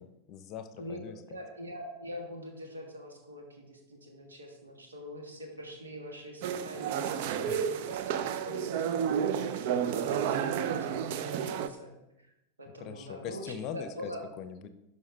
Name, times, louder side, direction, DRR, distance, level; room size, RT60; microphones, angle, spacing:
voice 1, 0.0-1.4 7.5-7.6 11.2-11.3 12.8-14.1 14.4-14.7, left 8 dB, 40° left, 11 dB, 0.7 m, -42 dB
voice 2, 0.8-12.3 12.6-14.2, equal, 75° right, 2 dB, 1.7 m, -44 dB
sound 1, 6.4-11.7, right 8 dB, 50° right, 0.5 m, -31 dB
11.0 x 5.3 x 3.3 m, 0.91 s
figure-of-eight pair, 90°, 0 cm